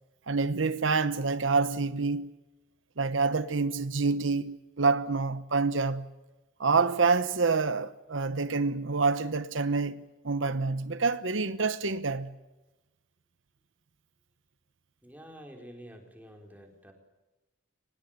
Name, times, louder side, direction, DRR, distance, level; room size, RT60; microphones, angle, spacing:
voice 1, 0.3-2.3 3.0-6.1 6.6-12.3, right 4 dB, 85° right, 1.0 m, -27 dB
voice 2, 15.0-16.9, equal, 10° right, 4.6 m, -48 dB
24.0 x 20.5 x 9.1 m
head